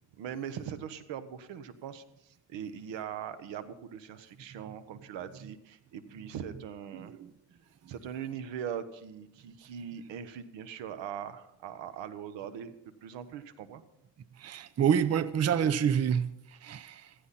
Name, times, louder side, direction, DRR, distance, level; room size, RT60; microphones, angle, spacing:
voice 1, 0.2-7.2 7.9-12.7 13.0-13.8, right 8 dB, 90° right, 1.4 m, -41 dB
voice 2, 6.9-7.3 7.8-7.9 14.4-17.1, right 8 dB, 35° right, 0.7 m, -28 dB
15.5 x 15.5 x 4.3 m
cardioid pair, 105°, 43 cm